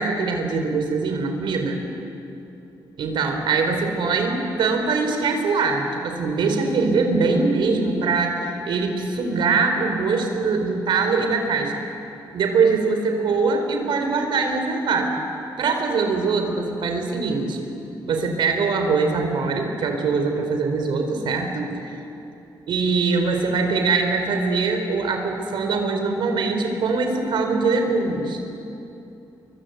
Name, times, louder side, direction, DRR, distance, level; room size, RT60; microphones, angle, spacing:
voice 1, 0.0-1.8 3.0-11.7 12.3-15.1 15.6-17.6 18.1-22.0 22.7-28.4, right 4 dB, 75° right, 4 dB, 4.3 m, -22 dB
30.0 x 23.5 x 8.1 m, 2.8 s
wide cardioid pair, 145°, 8 cm